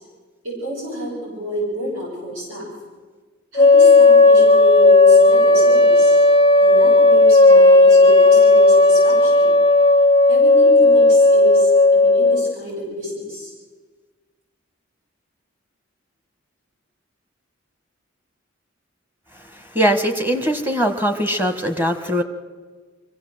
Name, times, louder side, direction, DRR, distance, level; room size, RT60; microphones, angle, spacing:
voice 1, 0.4-2.7 3.5-6.2 6.6-9.5 10.3-13.5, equal, 75° right, -4 dB, 7.6 m, -29 dB
sound 1, 3.6-12.5, left 2 dB, 25° left, 0.5 m, -12 dB
voice 2, 19.7-22.2, equal, 10° right, 7 dB, 1.3 m, -20 dB
23.5 x 16.0 x 7.8 m, 1.4 s
head